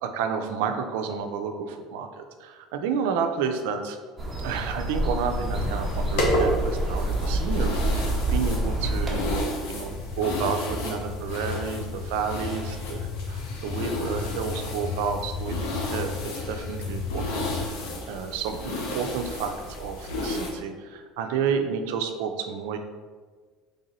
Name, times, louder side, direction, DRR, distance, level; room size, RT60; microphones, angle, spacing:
voice 1, 0.0-4.0 4.4-9.2 9.7-17.6 18.1-22.8, right 6 dB, 80° right, 6 dB, 0.4 m, -30 dB
sound 1, 4.2-9.4, right 1 dB, 15° right, 1.0 m, -27 dB
sound 2, 5.5-20.5, left 1 dB, 80° left, 0.8 m, -32 dB
sound 3, 9.9-17.7, left 6 dB, 40° left, 0.4 m, -35 dB
3.4 x 2.6 x 3.9 m, 1.5 s
supercardioid pair, 100°, 0 cm